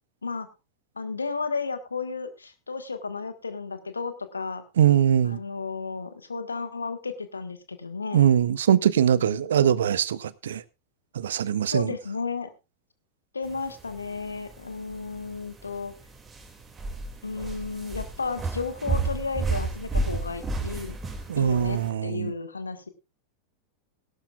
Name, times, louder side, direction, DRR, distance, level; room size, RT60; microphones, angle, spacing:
voice 1, 0.9-4.6 5.2-8.3 9.2-9.9 11.7-12.5 13.3-15.9 17.2-21.0 21.3-22.9, left 4 dB, 75° left, 1.5 m, -33 dB
voice 2, 4.8-5.4 8.1-10.6 11.1-11.9 21.3-22.3, right 9 dB, 65° right, 0.7 m, -22 dB
sound 1, 13.5-21.9, right 3 dB, 20° right, 2.5 m, -32 dB
18.5 x 11.5 x 2.4 m
figure-of-eight pair, 90°, 0 cm